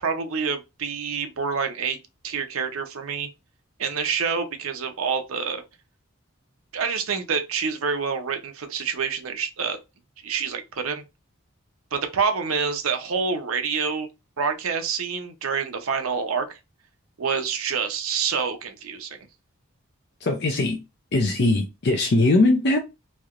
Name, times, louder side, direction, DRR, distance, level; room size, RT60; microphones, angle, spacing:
voice 1, 0.0-2.0 2.2-3.3 3.8-5.6 6.7-9.8 10.2-11.0 11.9-14.1 14.4-16.6 17.2-19.2, right 5 dB, 80° right, 0.7 m, -27 dB
voice 2, 20.2-20.8 21.1-22.8, left 2 dB, 50° left, 0.5 m, -20 dB
3.1 x 2.8 x 2.4 m
head